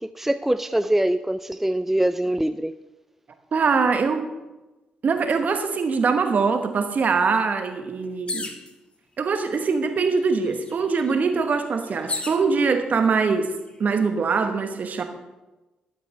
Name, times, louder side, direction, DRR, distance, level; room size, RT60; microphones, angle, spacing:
voice 1, 0.0-2.7, right 1 dB, 10° right, 12 dB, 0.4 m, -23 dB
voice 2, 3.5-4.3 5.0-8.5 9.2-13.5 13.8-15.0, right 5 dB, 55° right, 7 dB, 1.2 m, -23 dB
sound 1, 8.3-8.7 9.6-9.7 10.0-12.4 13.2-13.7, left 3 dB, 35° left, 1.3 m, -33 dB
12.0 x 9.0 x 3.4 m, 1.1 s
hypercardioid pair, 40°, 3 cm